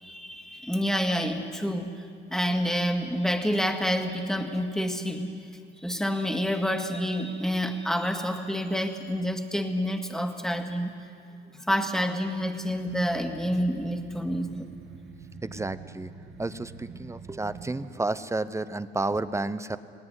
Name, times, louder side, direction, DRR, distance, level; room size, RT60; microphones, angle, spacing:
voice 1, 0.0-5.4 5.8-10.9 11.5-14.7, equal, ahead, 5 dB, 2.1 m, -28 dB
sound 1, 12.9-17.9, right 5 dB, 75° right, 1.7 m, -45 dB
voice 2, 15.4-16.1 16.4-19.8, right 2 dB, 15° right, 14 dB, 0.8 m, -31 dB
19.0 x 18.5 x 9.9 m, 2.3 s
cardioid pair, 90°, 20 cm